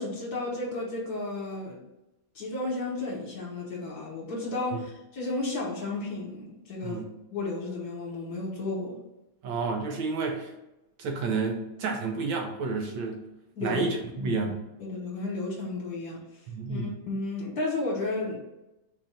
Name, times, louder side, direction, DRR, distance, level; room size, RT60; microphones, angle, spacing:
voice 1, 0.0-1.8 2.3-7.0 7.3-9.0 13.5-13.9 14.2-14.5 14.8-16.2 16.7-18.4, left 2 dB, 55° left, -3 dB, 1.6 m, -33 dB
voice 2, 9.4-10.5 11.0-13.2 13.6-14.6 16.5-16.9, right 4 dB, 75° right, 2 dB, 1.5 m, -30 dB
4.3 x 2.6 x 4.9 m, 0.94 s
omnidirectional pair, 2.2 m